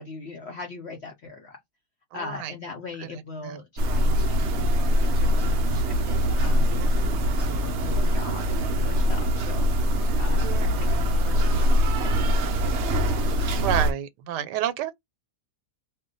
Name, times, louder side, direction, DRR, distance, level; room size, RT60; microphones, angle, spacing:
voice 1, 0.0-1.6 2.1-4.7 5.0-7.1 7.4-9.9 10.2-13.0, left 3 dB, 70° left, 0.6 m, -40 dB
voice 2, 2.1-2.5 3.4-3.6 6.8-7.2 10.4-11.0 13.6-14.9, right 11 dB, 90° right, 1.2 m, -30 dB
sound 1, 3.8-13.9, equal, 65° right, 0.6 m, -23 dB
2.7 x 2.1 x 3.8 m
omnidirectional pair, 1.8 m